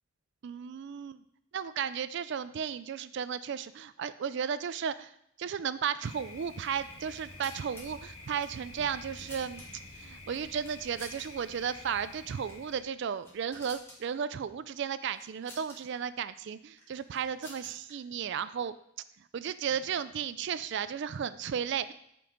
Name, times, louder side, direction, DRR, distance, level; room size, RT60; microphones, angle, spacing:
voice 1, 0.4-1.2 1.5-5.1 5.4-9.6 10.0-18.7 19.3-21.9, right 7 dB, 60° right, 14 dB, 0.3 m, -34 dB
Thunder, 6.0-12.8, left 2 dB, 90° left, 1.8 m, -49 dB
sound 1, 7.0-7.8 8.7-10.0 10.6-11.3 11.5-11.7 12.4-12.7 13.0-14.0 15.2-15.8 16.8-17.9, left 1 dB, 15° left, 2.2 m, -51 dB
10.5 x 5.3 x 5.0 m, 0.74 s
head